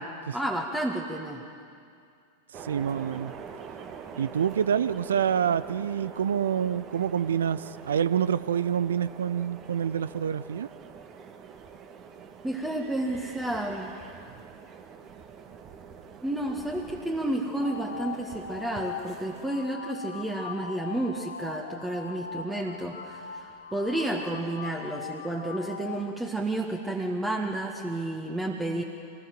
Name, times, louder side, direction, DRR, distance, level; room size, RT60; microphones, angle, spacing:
voice 1, 0.0-1.4 12.4-14.0 16.2-28.8, right 1 dB, 10° right, 0 dB, 1.7 m, -31 dB
sound 1, 2.5-19.5, right 6 dB, 30° right, 1.8 m, -45 dB
voice 2, 2.5-3.3 4.2-10.7, right 8 dB, 65° right, 16 dB, 0.6 m, -27 dB
sound 2, 17.6-26.0, left 6 dB, 65° left, 1.7 m, -40 dB
25.0 x 19.5 x 7.8 m, 2.3 s
figure-of-eight pair, 90°, 0 cm